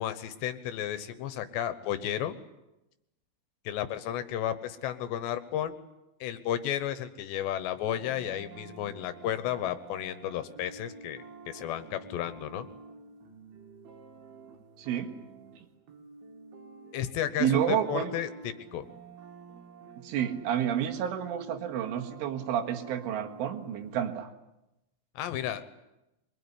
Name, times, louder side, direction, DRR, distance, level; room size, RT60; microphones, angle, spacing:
voice 1, 0.0-2.4 3.7-5.8 6.2-12.7 16.9-18.9 25.2-25.6, left 11 dB, 75° left, 12 dB, 3.0 m, -33 dB
sound 1, 7.9-24.0, right 4 dB, 60° right, 3.6 m, -50 dB
voice 2, 14.8-15.1 15.6-15.7 17.4-18.1 20.0-24.3, right 9 dB, 80° right, 4 dB, 4.2 m, -30 dB
24.0 x 21.5 x 9.8 m, 0.94 s
omnidirectional pair, 5.5 m